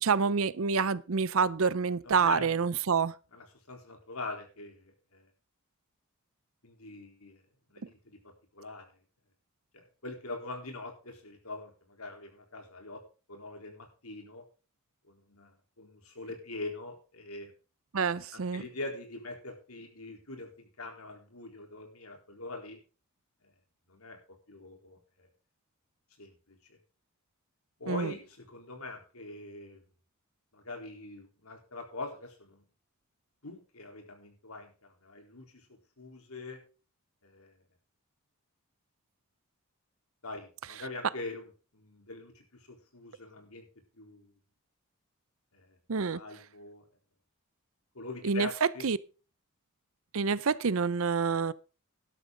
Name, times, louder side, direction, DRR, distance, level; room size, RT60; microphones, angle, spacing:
voice 1, 0.0-3.2 17.9-18.6 27.9-28.1 45.9-46.2 48.2-48.5 48.8-49.0 50.1-51.5, right 5 dB, 70° right, 0.6 m, -27 dB
voice 2, 2.0-2.6 3.3-5.3 6.6-7.4 7.7-8.9 9.7-13.0 13.3-14.4 15.1-17.5 18.3-22.8 23.4-23.5 23.9-24.2 24.5-25.3 26.2-26.8 27.8-29.8 30.5-32.6 33.4-36.6 37.2-37.5 40.2-43.7 43.9-44.3 45.5-45.8 46.1-46.9 47.9-48.8, left 2 dB, 85° left, 3.9 m, -43 dB
12.5 x 12.0 x 3.9 m
head